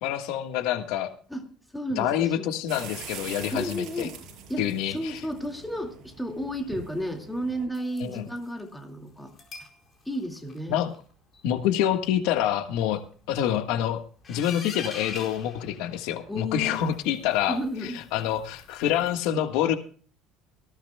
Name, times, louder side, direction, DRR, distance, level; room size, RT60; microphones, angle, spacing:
voice 1, 0.0-1.1 2.0-4.1 4.6-5.2 8.0-8.2 10.7-10.9 11.4-13.0 13.3-14.0 14.3-19.7, left 10 dB, 75° left, 7 dB, 1.5 m, -27 dB
voice 2, 1.7-2.5 3.5-4.2 4.5-9.3 9.6-9.7 10.1-10.8 16.3-16.9 17.5-18.0, equal, 5° left, 3 dB, 2.2 m, -32 dB
sound 1, 2.7-7.7, right 6 dB, 45° right, 6.7 m, -44 dB
sound 2, 7.7-8.6 9.3-9.8 10.1-10.6 10.9-11.0 11.3-11.4 11.7-11.8 12.1-12.2 12.5-12.6 12.9-13.4 14.2-16.4 16.7-19.1, left 4 dB, 25° left, 4.4 m, -44 dB
19.5 x 16.0 x 2.3 m, 0.42 s
cardioid pair, 165°, 0 cm